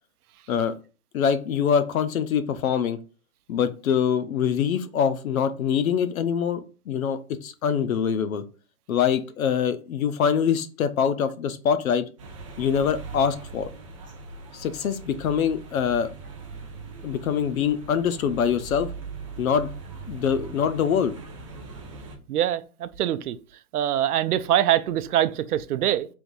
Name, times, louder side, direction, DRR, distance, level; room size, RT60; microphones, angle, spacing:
voice 1, 1.1-3.0 3.5-8.4 8.9-12.1 12.6-13.7 14.5-16.1 17.0-18.9 19.4-19.7 20.1-21.1, left 7 dB, 65° left, 0.7 m, -24 dB
sound 1, 12.2-22.2, right 4 dB, 25° right, 0.5 m, -40 dB
voice 2, 22.3-23.4 23.7-26.1, right 11 dB, 85° right, 0.6 m, -24 dB
3.5 x 2.6 x 4.6 m
hypercardioid pair, 160°, 44 cm